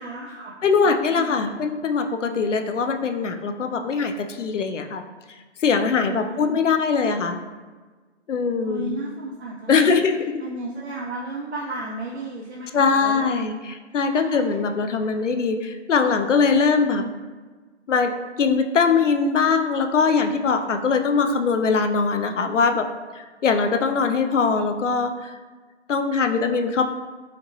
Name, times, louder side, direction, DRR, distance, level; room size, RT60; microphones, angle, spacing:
voice 1, 0.0-1.6 6.0-6.7 8.6-10.0 10.4-13.5 14.1-14.5 15.0-15.2 16.8-17.1, right 2 dB, 65° right, -4 dB, 0.6 m, -34 dB
voice 2, 0.6-5.0 5.6-7.4 8.3-9.0 9.7-10.4 12.7-17.0 17.9-18.1 18.4-22.8 23.2-25.3 25.9-26.9, left 5 dB, 85° left, 6 dB, 0.5 m, -21 dB
4.4 x 2.8 x 2.6 m, 1.4 s
figure-of-eight pair, 135°, 36 cm